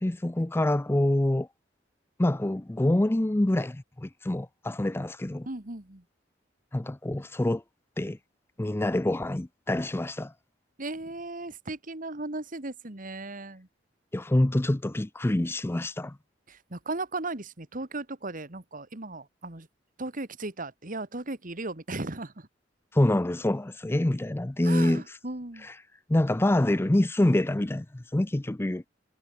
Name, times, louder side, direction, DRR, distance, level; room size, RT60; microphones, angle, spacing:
voice 1, 0.0-1.5 2.2-5.5 6.7-7.6 8.0-8.2 8.6-10.3 14.1-16.2 22.9-25.2 25.6-25.7 26.1-28.9, left 1 dB, 15° left, 0.5 m, -26 dB
voice 2, 5.5-6.0 10.8-13.7 16.5-19.7 20.0-22.5 24.6-25.7, right 2 dB, 45° right, 2.1 m, -36 dB
head